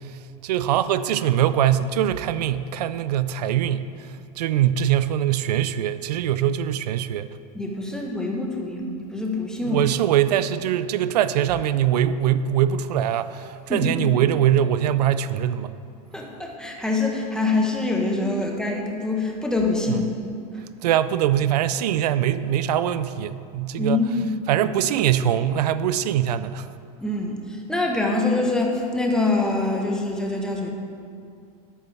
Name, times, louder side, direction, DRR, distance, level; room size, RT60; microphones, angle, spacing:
voice 1, 0.4-3.9 4.4-7.3 9.6-15.7 19.9-20.0 20.8-24.0 24.5-26.7, right 10 dB, 85° right, 14 dB, 0.5 m, -22 dB
voice 2, 7.5-9.8 13.7-14.0 16.1-20.1 20.5-20.6 23.8-24.3 27.0-30.7, left 2 dB, 5° left, 0 dB, 1.2 m, -25 dB
11.0 x 8.8 x 3.5 m, 2.4 s
supercardioid pair, 130°, 20 cm